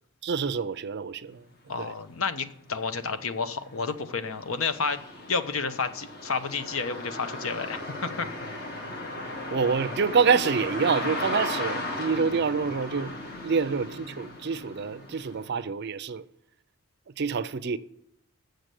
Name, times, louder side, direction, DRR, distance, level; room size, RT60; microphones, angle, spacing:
voice 1, 0.2-1.5 1.8-1.9 9.5-13.1 13.4-16.2 17.2-17.8, right 5 dB, 50° right, 0.4 m, -27 dB
voice 2, 1.7-5.0 5.3-8.5, left 5 dB, 70° left, 0.8 m, -31 dB
sound 1, 2.1-2.2 2.6-15.5, left 1 dB, 45° left, 1.6 m, -36 dB
7.7 x 6.6 x 8.2 m
head